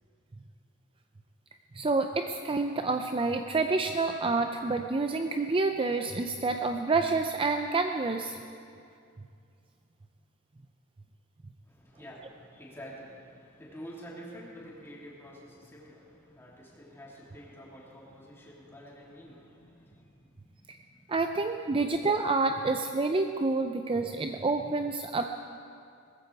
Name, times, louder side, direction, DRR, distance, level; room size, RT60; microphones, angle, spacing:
voice 1, 1.7-8.4 20.7-20.8 21.1-25.2, right 3 dB, 25° right, 5 dB, 0.5 m, -28 dB
voice 2, 11.6-21.0, equal, 10° left, -5 dB, 3.1 m, -48 dB
19.5 x 14.5 x 4.7 m, 2.4 s
head